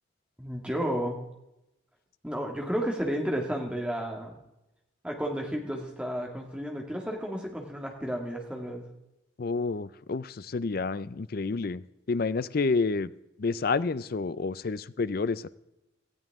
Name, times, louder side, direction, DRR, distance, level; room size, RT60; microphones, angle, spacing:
voice 1, 0.4-1.2 2.2-4.3 5.0-8.8, equal, 5° right, 1 dB, 2.0 m, -32 dB
voice 2, 9.4-11.8 12.1-13.1 13.4-15.5, left 4 dB, 50° left, 17 dB, 0.5 m, -29 dB
18.0 x 14.5 x 3.6 m, 0.90 s
head